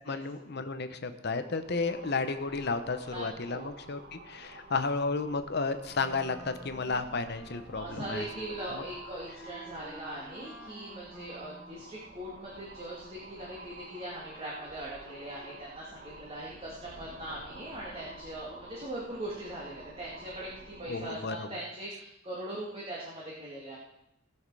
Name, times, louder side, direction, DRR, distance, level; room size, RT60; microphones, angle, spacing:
voice 1, 0.1-8.2 8.7-8.8 20.9-21.6, left 4 dB, 55° left, 10 dB, 0.9 m, -33 dB
sound 1, 1.4-21.3, right 2 dB, 55° right, 1.8 m, -50 dB
voice 2, 3.1-3.7 7.7-23.8, right 1 dB, 30° right, -5 dB, 2.3 m, -41 dB
Wind instrument woodwind instrument, 5.9-11.8, equal, 5° right, 1.3 m, -49 dB
19.0 x 6.4 x 4.8 m, 0.82 s
head